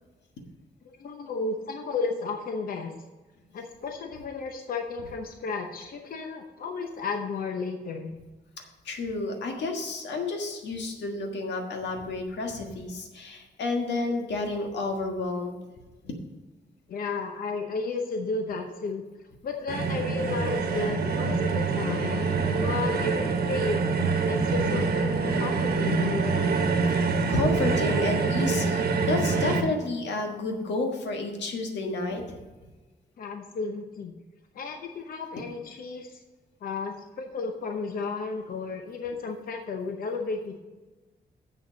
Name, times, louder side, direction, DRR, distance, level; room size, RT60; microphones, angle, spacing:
voice 1, 1.0-2.9 3.5-8.2 16.9-19.0 19.4-23.9 24.2-26.5 33.2-34.1 34.5-36.2 36.6-40.6, left 4 dB, 55° left, 4 dB, 0.8 m, -33 dB
voice 2, 8.6-15.6 16.0-16.1 24.4-24.5 26.9-32.2, left 2 dB, 90° left, 3 dB, 1.6 m, -31 dB
sound 1, 19.7-29.6, right 4 dB, 60° right, 1.1 m, -25 dB
7.2 x 6.7 x 6.4 m, 1.2 s
wide cardioid pair, 155°, 18 cm